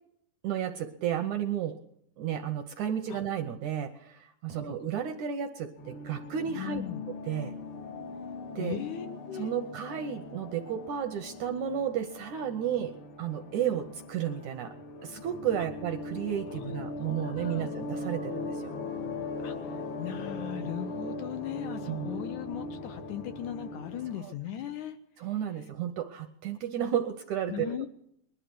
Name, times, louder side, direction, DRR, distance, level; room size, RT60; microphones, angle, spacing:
voice 1, 0.4-1.8 2.2-6.8 7.2-7.5 8.5-8.8 9.3-14.7 15.0-18.7 21.9-22.1 24.2-24.3 25.2-27.9, right 9 dB, 75° right, 7 dB, 1.8 m, -33 dB
sound 1, 5.8-24.2, left 3 dB, 55° left, 1.6 m, -40 dB
voice 2, 6.5-7.0 8.6-9.5 16.6-17.7 19.4-25.0 27.5-27.9, left 10 dB, 75° left, 9 dB, 1.8 m, -38 dB
20.5 x 11.5 x 6.1 m, 0.73 s
omnidirectional pair, 4.1 m